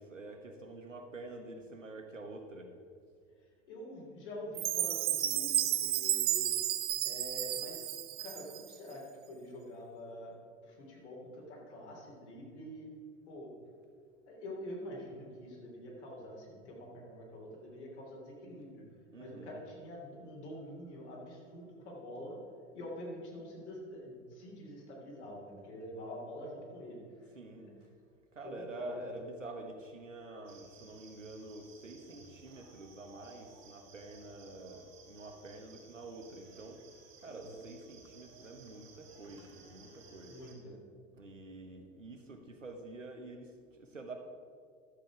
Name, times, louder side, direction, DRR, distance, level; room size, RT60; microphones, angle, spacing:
voice 1, 0.0-2.7 19.1-19.6 27.3-27.7 28.3-36.9 37.2-40.4 41.1-44.2, right 2 dB, 85° right, 4 dB, 1.2 m, -47 dB
voice 2, 3.7-6.5 7.0-7.9 8.2-10.3 10.6-13.0 13.3-13.5 14.3-18.8 19.2-22.4 22.7-27.3 27.6-27.7 28.4-29.0 37.2-37.6 40.2-40.8, left 1 dB, 65° left, -2 dB, 3.2 m, -46 dB
Chime, 4.5-8.7, right 12 dB, 25° right, 0.5 m, -32 dB
sound 1, 30.4-40.5, right 5 dB, 45° right, 3.1 m, -58 dB
12.0 x 7.7 x 4.9 m, 2.1 s
figure-of-eight pair, 80°, 37 cm